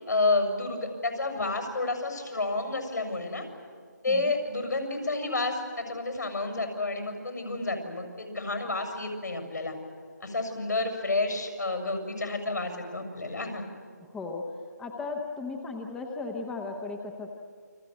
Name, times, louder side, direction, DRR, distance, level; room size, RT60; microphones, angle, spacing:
voice 1, 0.1-3.5 4.0-9.7 10.2-13.6, left 2 dB, 75° left, 5 dB, 7.0 m, -30 dB
voice 2, 14.1-14.5 14.8-17.3, left 3 dB, 5° left, 2 dB, 0.9 m, -36 dB
29.0 x 23.0 x 8.2 m, 2.1 s
figure-of-eight pair, 160°, 10 cm